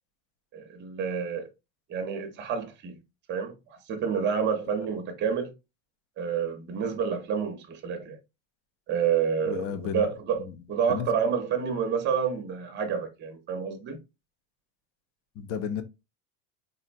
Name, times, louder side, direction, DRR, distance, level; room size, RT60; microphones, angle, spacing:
voice 1, 0.5-1.5 1.9-2.9 3.3-3.5 3.9-5.5 6.2-8.2 8.9-14.0, right 7 dB, 25° right, 0.6 m, -29 dB
voice 2, 9.5-10.0 10.4-10.6 10.9-11.1 15.3-15.8, left 7 dB, 35° left, 0.4 m, -33 dB
3.8 x 2.1 x 2.5 m
supercardioid pair, 130°, 41 cm